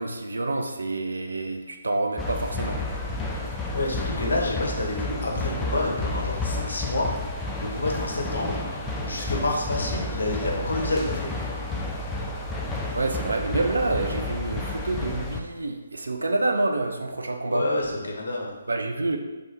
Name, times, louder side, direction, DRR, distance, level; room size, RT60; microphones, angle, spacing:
voice 1, 0.0-2.8 12.9-17.7 18.7-19.2, right 2 dB, 80° right, 5 dB, 0.5 m, -27 dB
sound 1, 2.2-15.4, left 2 dB, 10° left, 0.4 m, -31 dB
voice 2, 3.7-7.1 7.6-8.6 9.0-11.3 17.5-18.6, left 2 dB, 70° left, -2 dB, 1.1 m, -28 dB
3.3 x 2.9 x 4.2 m, 1.1 s
figure-of-eight pair, 140°, 0 cm